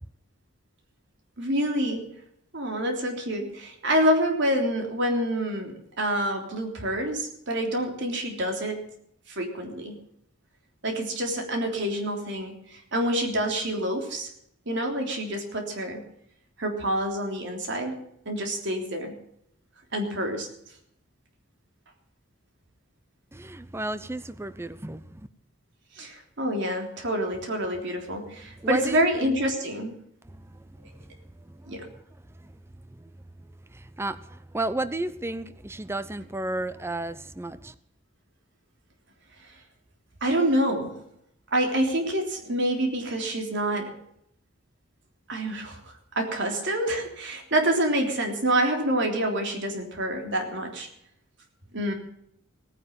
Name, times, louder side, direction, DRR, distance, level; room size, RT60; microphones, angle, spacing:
voice 1, 1.4-2.1 2.5-8.8 9.3-10.0 10.8-14.3 14.7-16.0 16.6-18.0 18.3-19.1 19.9-20.5 26.0-29.9 31.7-31.8 40.2-41.0 41.5-43.9 45.3-50.9 51.7-51.9, right 1 dB, 60° right, 3 dB, 3.5 m, -27 dB
voice 2, 23.3-25.3 28.6-29.4 30.2-32.0 32.3-32.5 33.0-33.1 33.7-37.7, right 2 dB, 15° right, 13 dB, 0.6 m, -34 dB
18.0 x 9.8 x 7.0 m, 0.74 s
head